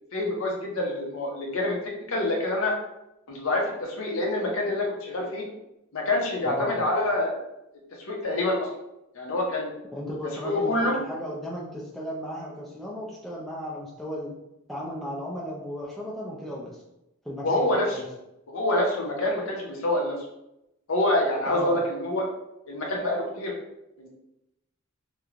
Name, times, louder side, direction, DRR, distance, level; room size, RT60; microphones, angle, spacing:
voice 1, 0.1-1.8 2.1-2.7 3.3-5.5 5.9-7.3 8.1-8.7 9.1-9.7 10.4-11.0 17.4-18.0 18.5-20.2 20.9-22.2 22.7-23.5 24.0-24.1, left 1 dB, 65° left, -1 dB, 0.6 m, -26 dB
voice 2, 6.4-6.8 9.9-14.3 14.7-16.8 17.2-17.6 17.9-18.0 21.5-21.8, equal, ahead, -6 dB, 0.4 m, -35 dB
3.0 x 2.1 x 2.4 m, 0.88 s
head